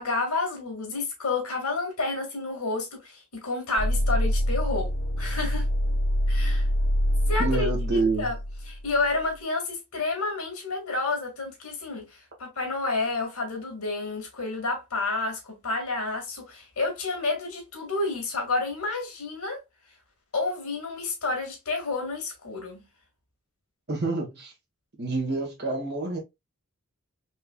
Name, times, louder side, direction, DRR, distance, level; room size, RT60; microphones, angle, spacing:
voice 1, 0.0-4.9 5.2-5.7 6.3-6.7 7.3-7.7 7.9-8.4 8.7-19.6 20.3-22.8, left 3 dB, 85° left, 1.8 m, -30 dB
sound 1, 3.8-9.2, equal, 60° left, 1.9 m, -26 dB
voice 2, 7.4-8.3 23.9-24.5 25.0-26.2, right 3 dB, 50° right, 1.6 m, -27 dB
4.4 x 3.1 x 2.2 m
head